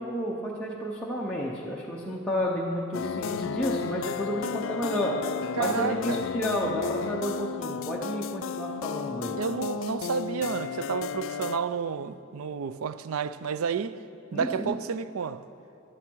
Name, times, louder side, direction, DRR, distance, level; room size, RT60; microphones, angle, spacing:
voice 1, 0.0-5.3 5.6-9.4 14.3-14.8, equal, 5° left, 0.7 m, -31 dB
sound 1, 2.9-11.6, left 6 dB, 65° left, 0.4 m, -33 dB
voice 2, 5.5-6.2 9.4-14.0 14.3-15.5, right 6 dB, 80° right, 0.4 m, -30 dB
14.5 x 11.0 x 4.6 m
head